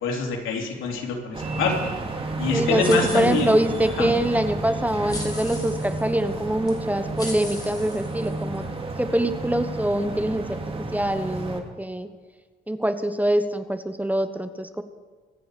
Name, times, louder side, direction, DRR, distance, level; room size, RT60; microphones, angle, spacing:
voice 1, 0.0-1.9 2.4-3.5 4.0-4.1, left 4 dB, 85° left, 1 dB, 3.3 m, -26 dB
sound 1, 1.3-11.6, right 2 dB, 30° right, 2.4 m, -31 dB
voice 2, 2.5-8.7 9.0-10.6 10.9-12.1 12.7-14.8, right 1 dB, 10° right, 10 dB, 1.0 m, -24 dB
sound 2, 2.8-3.9 5.1-6.0 6.7-6.8 7.2-8.6, left 2 dB, 20° left, 3.5 m, -38 dB
25.0 x 9.1 x 5.0 m, 1.4 s
cardioid pair, 90°, 20 cm